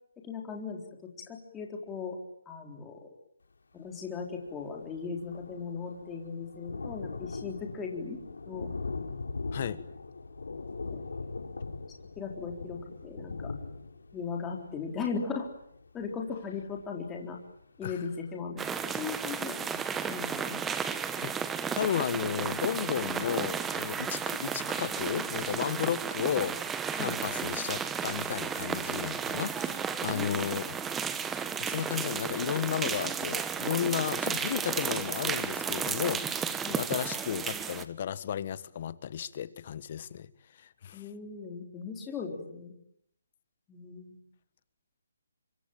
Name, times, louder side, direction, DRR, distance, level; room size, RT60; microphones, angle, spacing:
voice 1, 0.2-0.8 1.3-2.2 2.5-3.0 3.7-8.2 8.5-8.7 10.9-11.0 12.2-13.5 14.1-15.5 15.9-17.4 17.8-18.6 19.0-19.7 20.0-20.6 27.0-27.1 30.1-30.5 36.6-36.8 40.9-42.7 43.7-44.2, left 5 dB, 10° left, 1 dB, 4.0 m, -38 dB
Thunder, 4.2-4.3 4.5-17.1 17.6-17.7 18.0-18.1, left 3 dB, 85° left, 4.5 m, -40 dB
sound 1, 18.6-37.8, right 7 dB, 10° right, 1.1 m, -33 dB
voice 2, 21.7-26.6 26.9-30.8 31.6-40.3 40.6-41.0, left 9 dB, 35° left, 15 dB, 1.5 m, -33 dB
25.0 x 25.0 x 9.1 m, 0.72 s
hypercardioid pair, 165°, 0 cm